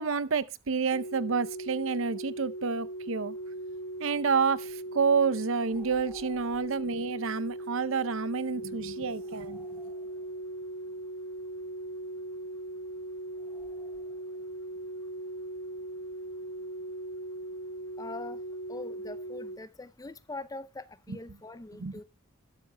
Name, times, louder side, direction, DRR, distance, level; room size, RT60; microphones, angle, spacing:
voice 1, 0.0-3.3 4.0-9.6 21.1-21.2 21.8-21.9, right 5 dB, 65° right, 0.6 m, -29 dB
sound 1, 0.9-19.6, right 1 dB, 55° left, 1.5 m, -39 dB
sound 2, 5.6-7.0 9.2-10.6 13.3-14.5, right 1 dB, 10° right, 1.8 m, -57 dB
voice 2, 18.0-18.4 18.7-22.0, left 3 dB, 15° left, 0.5 m, -42 dB
12.0 x 12.0 x 2.2 m
head